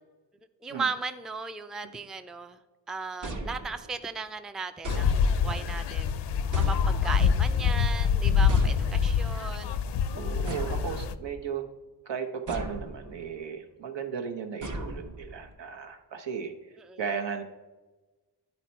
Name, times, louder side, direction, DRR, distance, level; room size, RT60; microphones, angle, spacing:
voice 1, 0.6-2.6 2.9-6.1 6.5-9.7 16.8-17.0, right 4 dB, ahead, 9 dB, 0.3 m, -36 dB
sound 1, 3.2-4.1 4.8-5.7 6.5-7.4 8.5-9.3 10.5-11.5 12.5-13.2 14.6-15.5, right 2 dB, 45° right, 1.0 m, -37 dB
sound 2, 4.9-11.1, left 6 dB, 70° left, 0.5 m, -25 dB
voice 2, 10.1-11.7 12.0-17.4, right 6 dB, 75° right, 4 dB, 1.0 m, -35 dB
10.0 x 4.3 x 4.4 m, 1.2 s
cardioid pair, 70°, 43 cm